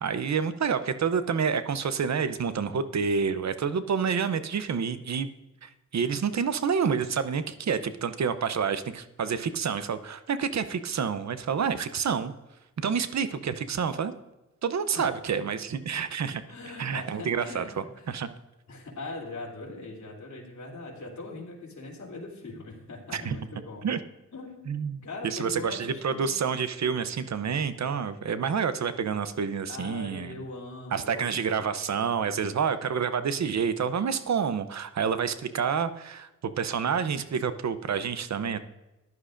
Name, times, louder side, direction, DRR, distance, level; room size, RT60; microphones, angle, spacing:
voice 1, 0.0-5.3 5.6-12.3 12.8-14.1 14.6-16.4 16.8-18.3 23.1-23.4 23.8-24.0 24.7-30.4 30.9-36.3 36.6-38.6, right 6 dB, 60° right, 12 dB, 0.7 m, -28 dB
voice 2, 16.5-18.1 18.7-23.8 24.3-26.3 29.7-31.5, left 2 dB, 65° left, -2 dB, 3.2 m, -41 dB
15.0 x 11.0 x 2.6 m, 1.0 s
wide cardioid pair, 85°, 31 cm